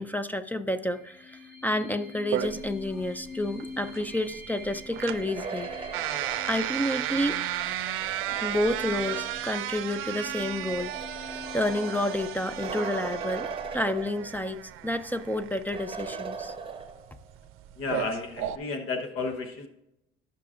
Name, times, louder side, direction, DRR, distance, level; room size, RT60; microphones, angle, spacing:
voice 1, 0.0-5.7 6.4-7.4 8.4-11.0 11.3-13.5 13.7-16.5, left 1 dB, 10° left, 11 dB, 0.4 m, -30 dB
sound 1, 0.9-14.2, left 2 dB, 65° left, 1.7 m, -45 dB
sound 2, 2.3-18.6, right 13 dB, 75° right, 0.5 m, -34 dB
sound 3, 4.9-9.6 10.5-14.7 15.0-15.1 15.7-17.3, right 5 dB, 25° right, 0.9 m, -39 dB
voice 2, 17.8-19.7, left 4 dB, 80° left, 6 dB, 1.1 m, -32 dB
15.0 x 5.8 x 2.5 m, 0.84 s
cardioid pair, 110°, 21 cm